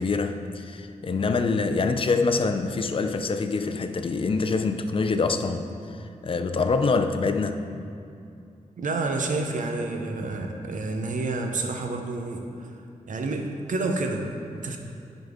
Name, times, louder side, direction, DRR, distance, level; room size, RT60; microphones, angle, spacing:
voice 1, 0.0-5.7 6.2-7.6, left 4 dB, 40° left, 7 dB, 0.4 m, -25 dB
voice 2, 8.8-12.7 13.1-14.8, right 3 dB, 75° right, 4 dB, 0.7 m, -29 dB
10.5 x 4.0 x 3.6 m, 2.5 s
wide cardioid pair, 90°, 14 cm